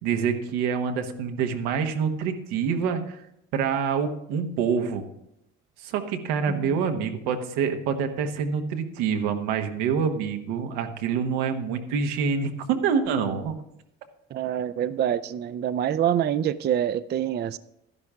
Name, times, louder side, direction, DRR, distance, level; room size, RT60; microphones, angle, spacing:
voice 1, 0.0-3.2 3.5-5.0 5.8-13.6, right 6 dB, 90° right, 1.2 m, -26 dB
voice 2, 6.5-6.8 14.3-17.6, right 10 dB, 35° right, 0.4 m, -26 dB
12.0 x 11.0 x 3.6 m
cardioid pair, 105°, 31 cm